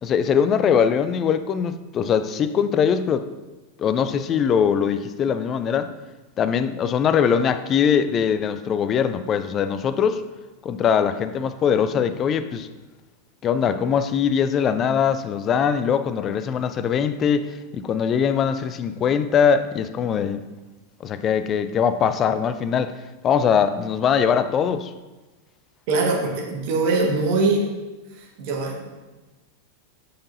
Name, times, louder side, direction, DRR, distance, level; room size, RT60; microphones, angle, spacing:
voice 1, 0.0-3.3 3.8-5.9 6.4-10.2 10.6-12.7 13.4-20.4 21.0-22.9 23.2-24.9, left 7 dB, 30° left, 11 dB, 0.4 m, -21 dB
voice 2, 25.9-27.6 28.2-28.9, right 3 dB, 45° right, 0 dB, 1.3 m, -22 dB
6.5 x 5.9 x 2.7 m, 1.2 s
figure-of-eight pair, 90°, 0 cm